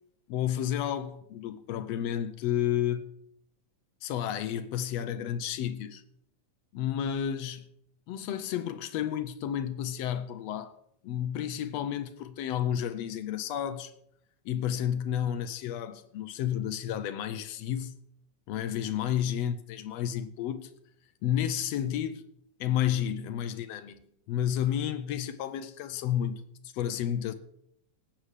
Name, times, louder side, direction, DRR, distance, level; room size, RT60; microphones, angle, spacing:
voice 1, 0.3-3.1 4.0-6.0 6.7-7.7 8.1-10.7 11.0-13.9 14.4-18.0 18.5-20.7 21.2-22.2 22.6-27.3, left 10 dB, 75° left, 1.6 m, -31 dB
19.5 x 8.7 x 3.2 m
omnidirectional pair, 3.3 m